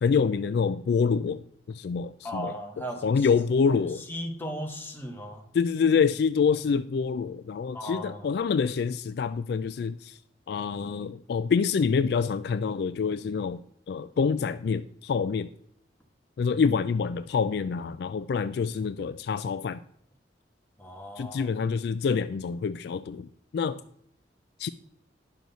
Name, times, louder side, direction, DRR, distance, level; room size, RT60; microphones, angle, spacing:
voice 1, 0.0-2.5 3.0-4.0 5.5-10.2 10.5-13.6 13.9-15.5 16.4-19.8 21.2-23.8 24.6-24.7, left 5 dB, 60° left, 13 dB, 0.3 m, -26 dB
voice 2, 2.2-3.3 4.1-5.5 7.7-8.3 20.8-21.5, equal, 10° left, 1 dB, 1.3 m, -36 dB
10.5 x 6.3 x 4.0 m, 0.69 s
head